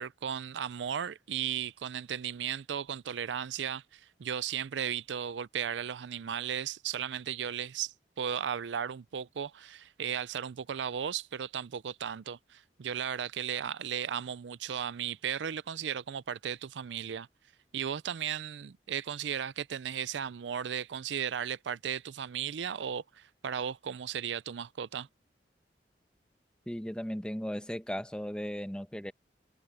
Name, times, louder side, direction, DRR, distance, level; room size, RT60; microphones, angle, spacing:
voice 1, 0.0-17.3 17.7-25.1, right 8 dB, 80° right, 0.4 m, -35 dB
voice 2, 26.7-29.1, equal, 5° left, 1.2 m, -36 dB
head